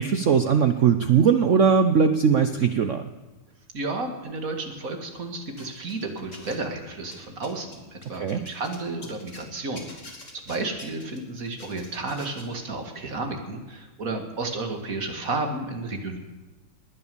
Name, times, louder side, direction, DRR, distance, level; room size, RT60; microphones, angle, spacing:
voice 1, 0.0-3.0 8.1-8.4, right 6 dB, 75° right, 9 dB, 0.7 m, -20 dB
voice 2, 3.7-9.9 10.5-16.2, right 2 dB, 40° right, 4 dB, 2.3 m, -32 dB
sound 1, 5.6-6.7 7.0-9.4 9.7-12.5, left 2 dB, 35° left, 2.8 m, -46 dB
20.0 x 9.8 x 6.9 m, 1.2 s
omnidirectional pair, 2.3 m